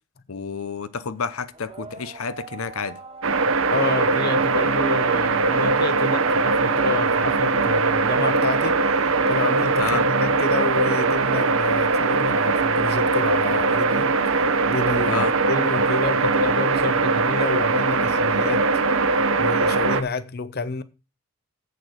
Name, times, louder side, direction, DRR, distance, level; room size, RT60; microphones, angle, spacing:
voice 1, 0.3-3.0 9.8-10.1 15.1-15.3, left 5 dB, 80° left, 0.7 m, -29 dB
sound 1, 0.9-17.3, right 3 dB, 30° right, 1.4 m, -44 dB
sound 2, 3.2-20.0, right 3 dB, 70° right, 0.9 m, -21 dB
voice 2, 3.7-8.8 9.3-14.1 14.6-18.7 19.4-20.8, left 3 dB, 45° left, 0.7 m, -29 dB
8.1 x 6.8 x 6.3 m
head